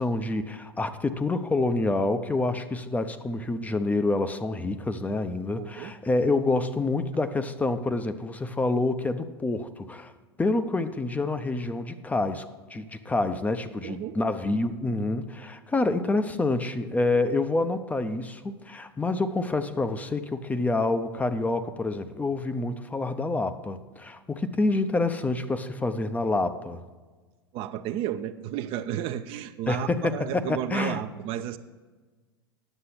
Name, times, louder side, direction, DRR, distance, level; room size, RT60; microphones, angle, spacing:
voice 1, 0.0-10.1 10.4-26.8 29.7-31.0, left 2 dB, 10° left, 9 dB, 0.6 m, -27 dB
voice 2, 5.5-5.9 13.8-14.2 27.5-31.6, right 11 dB, 40° right, 10 dB, 0.5 m, -33 dB
10.0 x 7.5 x 5.9 m, 1.3 s
figure-of-eight pair, 90°, 13 cm